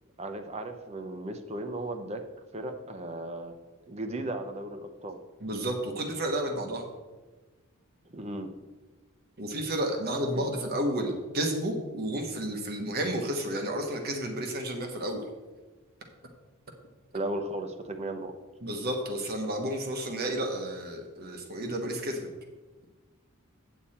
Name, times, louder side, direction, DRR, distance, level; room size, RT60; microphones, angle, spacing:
voice 1, 0.2-2.2 2.5-3.6 3.9-5.2 8.1-8.5 10.3-10.5 17.1-18.3, right 1 dB, 30° right, 5 dB, 0.8 m, -35 dB
voice 2, 5.4-6.9 9.4-15.2 18.6-22.3, right 1 dB, 45° right, 3 dB, 1.3 m, -31 dB
8.6 x 7.2 x 4.3 m, 1.2 s
head